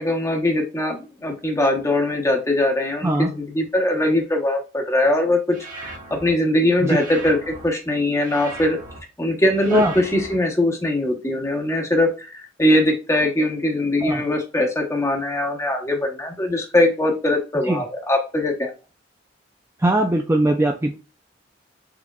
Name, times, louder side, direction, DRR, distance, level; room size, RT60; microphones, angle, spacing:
voice 1, 0.0-8.8 9.2-18.7, left 1 dB, 15° left, 2 dB, 0.9 m, -21 dB
sound 1, 5.5-6.3 6.9-7.6 8.2-9.0 9.6-10.3, right 2 dB, 45° right, 1.1 m, -38 dB
voice 2, 19.8-20.9, right 1 dB, 15° right, 3 dB, 0.3 m, -20 dB
4.7 x 3.5 x 2.3 m, 0.32 s
head